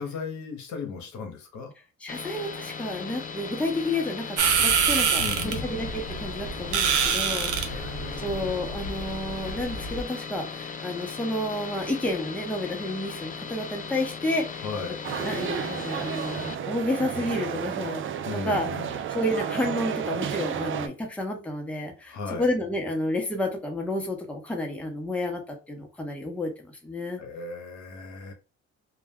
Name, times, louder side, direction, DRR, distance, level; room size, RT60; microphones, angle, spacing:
voice 1, 0.0-1.7 5.2-5.7 7.4-8.6 14.6-15.0 18.2-19.0 22.1-22.5 27.2-28.3, left 5 dB, 70° left, 4 dB, 0.8 m, -36 dB
voice 2, 2.0-4.3 4.6-7.9 8.2-14.6 15.2-18.0 18.3-18.7 19.1-27.2, left 1 dB, 5° left, 1 dB, 0.7 m, -30 dB
sound 1, 2.1-16.6, left 5 dB, 30° left, 0.3 m, -38 dB
sound 2, 4.4-10.0, right 6 dB, 85° right, 0.6 m, -26 dB
sound 3, 15.0-20.9, right 8 dB, 45° right, 0.4 m, -32 dB
2.3 x 2.1 x 3.4 m, 0.32 s
cardioid pair, 90°, 30 cm